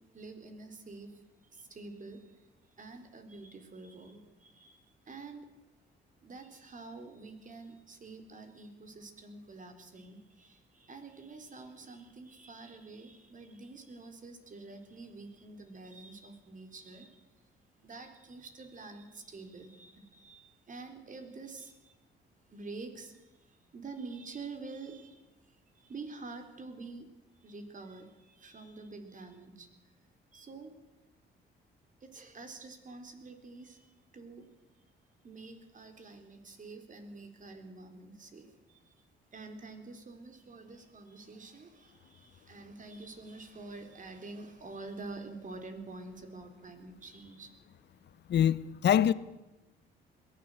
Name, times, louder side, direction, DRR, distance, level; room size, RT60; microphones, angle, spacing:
voice 1, 0.1-1.2 1.5-5.5 6.2-17.3 17.8-22.0 22.5-27.1 27.4-29.9 30.3-30.7 32.0-34.5 35.2-47.5, right 3 dB, 40° right, 4.0 m, -47 dB
voice 2, 48.3-49.1, left 9 dB, 60° left, 0.9 m, -24 dB
21.5 x 16.0 x 8.0 m
cardioid pair, 90°, 20 cm